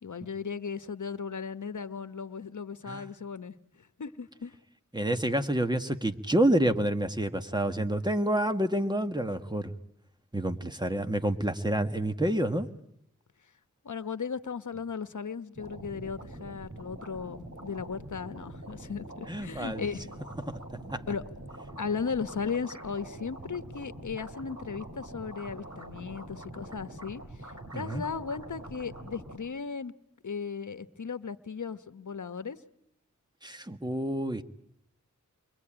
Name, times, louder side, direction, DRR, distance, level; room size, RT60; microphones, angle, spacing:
voice 1, 0.0-3.5 4.0-4.6 13.8-20.1 21.1-21.3 21.8-29.9 30.2-32.6, left 5 dB, 70° left, 11 dB, 1.2 m, -36 dB
voice 2, 4.9-9.7 10.3-12.7 19.3-19.9 20.9-21.0 27.7-28.0 33.4-34.4, right 1 dB, 15° right, 8 dB, 1.7 m, -28 dB
sound 1, 15.5-29.4, right 1 dB, 60° right, 5.1 m, -45 dB
29.0 x 23.0 x 8.9 m, 0.78 s
wide cardioid pair, 55°, 31 cm